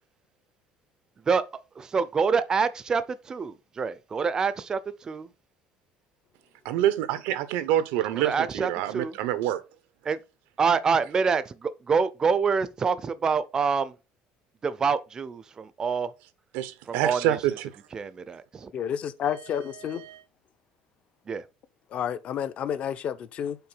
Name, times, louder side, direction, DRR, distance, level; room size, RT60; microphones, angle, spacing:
voice 1, 1.8-5.3 8.1-9.2 10.0-10.2 10.6-13.9 14.6-16.1 16.9-17.4 17.9-18.7 21.3-21.4, right 5 dB, 20° right, 0.5 m, -26 dB
voice 2, 6.6-9.6 16.5-17.7 19.8-20.2, right 12 dB, 85° right, 0.9 m, -27 dB
voice 3, 18.7-20.0 21.9-23.6, left 9 dB, 40° left, 0.6 m, -30 dB
5.8 x 4.2 x 5.6 m
cardioid pair, 170°, 3 cm